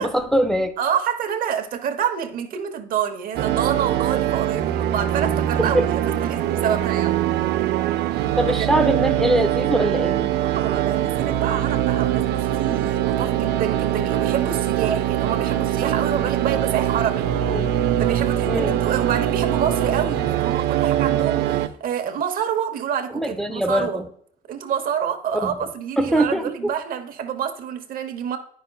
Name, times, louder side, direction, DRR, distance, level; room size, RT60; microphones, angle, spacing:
voice 1, 0.0-0.7 5.6-5.9 8.4-10.3 17.5-17.7 18.5-18.8 23.1-24.1 25.3-25.6 26.0-26.7, right 1 dB, ahead, 0.4 m, -22 dB
voice 2, 0.8-5.8 6.2-7.2 8.6-8.7 10.4-17.3 18.0-24.0 24.5-28.4, right 8 dB, 60° right, 0.9 m, -27 dB
sound 1, 3.4-21.7, right 11 dB, 75° right, 0.5 m, -22 dB
10.0 x 5.6 x 2.3 m
cardioid pair, 110°, 17 cm